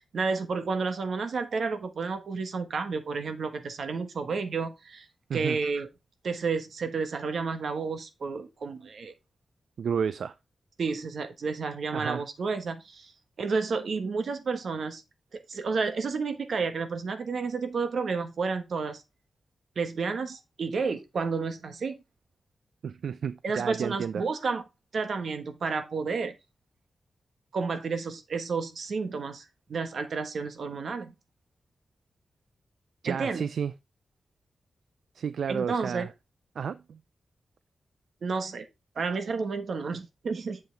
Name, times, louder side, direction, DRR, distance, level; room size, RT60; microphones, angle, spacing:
voice 1, 0.0-5.1 5.3-5.9 6.2-9.1 10.8-13.1 13.4-15.0 15.3-19.0 19.8-22.0 23.4-24.6 24.9-26.3 27.5-31.1 33.0-33.5 35.5-36.1 38.2-38.7 38.9-40.6, right 4 dB, 65° right, 1.3 m, -31 dB
voice 2, 9.8-10.3 11.9-12.3 22.8-24.2 33.0-33.7 35.2-36.1 36.6-37.0, right 7 dB, 80° right, 0.4 m, -31 dB
7.9 x 7.4 x 3.3 m
wide cardioid pair, 135°, 0 cm